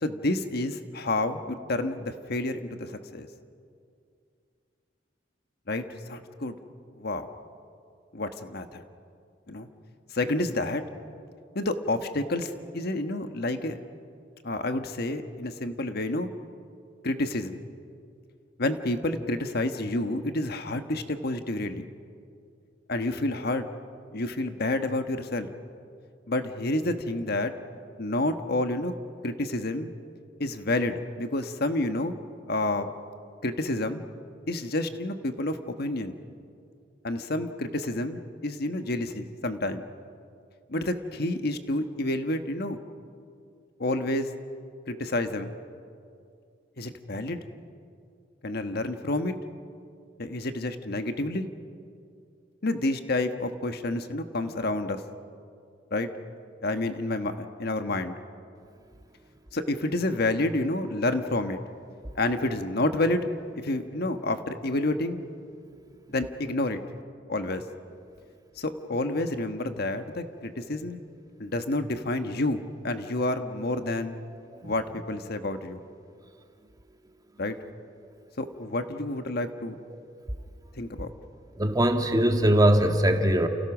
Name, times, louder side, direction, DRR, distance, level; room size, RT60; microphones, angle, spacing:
voice 1, 0.0-3.3 5.7-6.6 7.0-7.3 8.1-8.8 9.5-9.7 10.1-10.8 11.5-13.8 14.4-16.3 17.0-17.6 18.6-21.8 22.9-23.7 24.1-25.5 26.3-27.5 28.0-28.9 29.2-29.9 30.4-32.1 32.5-32.9 33.4-34.0 34.5-36.2 37.0-39.8 40.7-42.8 43.8-44.3 44.9-45.5 46.8-47.5 48.4-49.4 50.2-51.5 52.6-55.0 55.9-56.1 56.6-58.2 59.5-61.6 62.1-63.3 63.6-65.2 66.1-66.8 67.3-67.6 68.6-71.0 71.4-74.1 74.6-75.8 77.4-77.5 78.4-79.8 80.8-81.1, left 2 dB, 55° left, 7 dB, 1.4 m, -29 dB
voice 2, 81.6-83.5, right 1 dB, 20° right, 5 dB, 1.8 m, -21 dB
30.0 x 29.0 x 6.2 m, 2.4 s
head